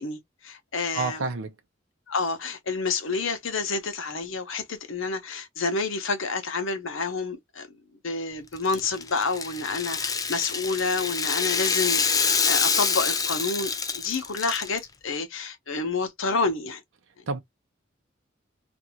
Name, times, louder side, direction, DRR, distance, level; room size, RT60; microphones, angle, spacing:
voice 1, 0.0-1.2 2.1-7.7 8.0-16.8 17.2-17.3, left 4 dB, 80° left, 0.8 m, -29 dB
voice 2, 0.9-1.6 17.3-17.4, right 4 dB, 75° right, 0.6 m, -29 dB
Rattle (instrument), 8.6-14.8, left 5 dB, 20° left, 0.3 m, -26 dB
2.6 x 2.5 x 2.9 m
head